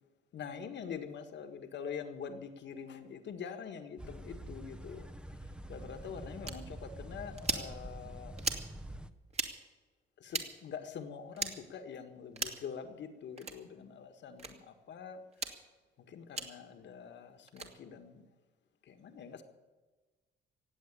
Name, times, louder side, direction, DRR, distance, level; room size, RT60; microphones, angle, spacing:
voice 1, 0.3-5.1 5.7-8.3 10.2-15.2 16.0-18.2 18.8-19.4, left 7 dB, 65° left, 7 dB, 1.7 m, -45 dB
sound 1, 4.0-9.1, right 1 dB, 5° right, 0.9 m, -46 dB
sound 2, 6.5-6.6 7.4-7.7 8.4-8.7 9.3-9.5 10.3-10.5 11.4-11.5 12.3-12.6 13.4-13.6 14.4-14.5 15.3-15.5 16.4-16.5 17.5-17.7, right 3 dB, 30° right, 2.2 m, -36 dB
17.5 x 8.1 x 9.8 m, 1.3 s
cardioid pair, 90°, 20 cm